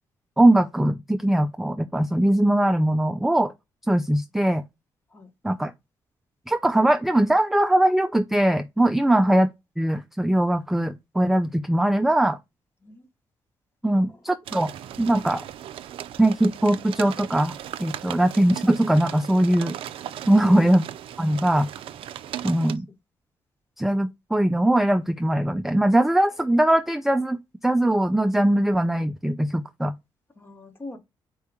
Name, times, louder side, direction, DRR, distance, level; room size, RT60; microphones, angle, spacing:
voice 1, 0.4-3.5 3.9-4.6 5.4-5.7 6.5-9.5 9.8-12.4 13.8-14.7 15.0-15.4 16.2-19.7 20.3-20.8 21.2-21.7 22.4-22.9 23.8-29.9, right 1 dB, 5° right, 0.3 m, -21 dB
voice 2, 14.0-14.3 20.3-20.7 22.7-23.0 30.4-31.0, left 3 dB, 25° left, 1.1 m, -42 dB
sound 1, 14.4-22.8, right 11 dB, 75° right, 0.4 m, -38 dB
4.5 x 2.8 x 3.5 m
cardioid pair, 105°, 9 cm